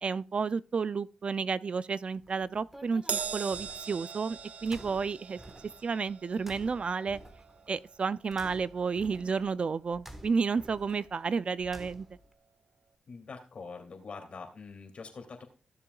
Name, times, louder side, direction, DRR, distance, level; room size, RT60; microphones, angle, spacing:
voice 1, 0.0-5.4 5.8-7.2 7.7-12.1, right 5 dB, 50° right, 0.4 m, -31 dB
sound 1, 2.2-12.3, right 1 dB, 10° right, 1.4 m, -52 dB
Crash cymbal, 3.1-9.7 10.0-10.3 11.3-11.4, right 6 dB, 65° right, 0.8 m, -41 dB
voice 2, 13.1-15.4, left 4 dB, 55° left, 2.7 m, -44 dB
15.5 x 6.9 x 2.3 m
cardioid pair, 70°, 2 cm